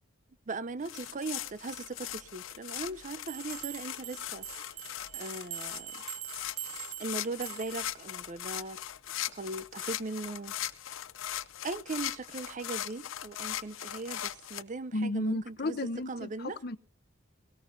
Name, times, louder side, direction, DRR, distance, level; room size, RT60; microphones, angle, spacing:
voice 1, 0.5-4.5 5.1-6.0 7.0-8.8 9.3-10.5 11.6-15.8 16.1-16.6, right 3 dB, 40° right, 0.6 m, -39 dB
sound 1, 0.8-14.6, left 12 dB, 80° left, 0.6 m, -39 dB
sound 2, 3.3-7.9, right 12 dB, 90° right, 0.7 m, -43 dB
voice 2, 14.9-16.8, left 2 dB, 50° left, 0.8 m, -33 dB
19.0 x 18.0 x 2.7 m
head